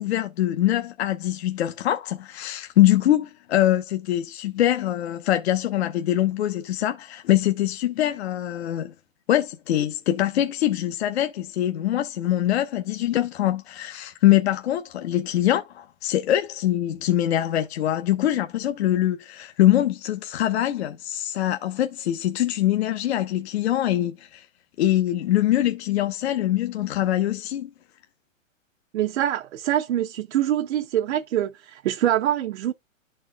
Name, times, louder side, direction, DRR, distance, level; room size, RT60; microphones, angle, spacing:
voice 1, 0.0-8.9 9.3-24.5 24.8-27.7, left 13 dB, 55° left, 0.8 m, -23 dB
voice 2, 28.9-32.7, right 11 dB, 55° right, 0.7 m, -24 dB
11.5 x 4.3 x 2.2 m
hypercardioid pair, 150°, 40 cm